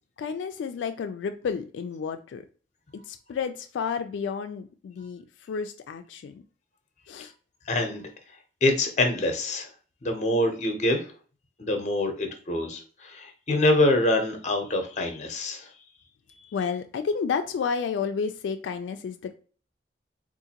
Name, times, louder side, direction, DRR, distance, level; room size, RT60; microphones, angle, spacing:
voice 1, 0.2-2.4 2.9-5.2 5.5-6.4 7.1-7.3 16.5-19.3, left 6 dB, 90° left, 0.3 m, -31 dB
voice 2, 7.7-8.1 8.6-9.7 10.0-11.1 11.6-15.7 16.3-16.5, left 1 dB, 40° left, 0.7 m, -25 dB
3.7 x 2.5 x 2.8 m
head